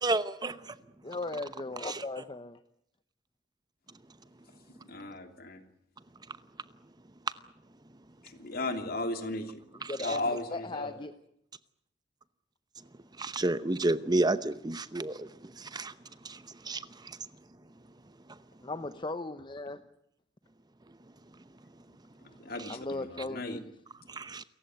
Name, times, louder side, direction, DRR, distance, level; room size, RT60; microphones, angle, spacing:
voice 1, 0.0-0.8 1.8-2.0 9.8-10.2 13.2-15.9 16.2-17.2 22.6-22.8 24.1-24.4, right 2 dB, 25° right, 0.9 m, -31 dB
voice 2, 1.0-2.6 9.9-11.1 18.6-19.8 22.7-23.7, left 2 dB, 25° left, 0.9 m, -37 dB
voice 3, 4.8-5.6 8.2-9.6 10.0-10.9 22.4-23.6, left 2 dB, 55° left, 3.0 m, -35 dB
28.5 x 15.5 x 9.3 m
head